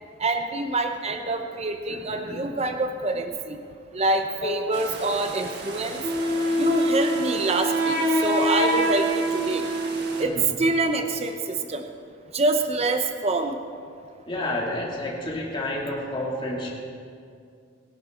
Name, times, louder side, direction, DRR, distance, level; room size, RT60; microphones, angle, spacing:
voice 1, 0.2-3.6 3.9-6.0 6.6-8.0 8.2-9.7 10.2-10.3 10.6-11.9 12.3-13.6, right 2 dB, 30° right, 6 dB, 0.7 m, -26 dB
voice 2, 1.9-2.6 4.4-4.6 10.2-10.4 14.3-16.7, left 1 dB, 25° left, -4 dB, 2.6 m, -31 dB
sound 1, 4.7-10.3, right 3 dB, 55° right, 1.5 m, -37 dB
Wind instrument woodwind instrument, 6.0-10.8, right 1 dB, 80° right, 3.8 m, -25 dB
21.5 x 11.0 x 3.9 m, 2.3 s
head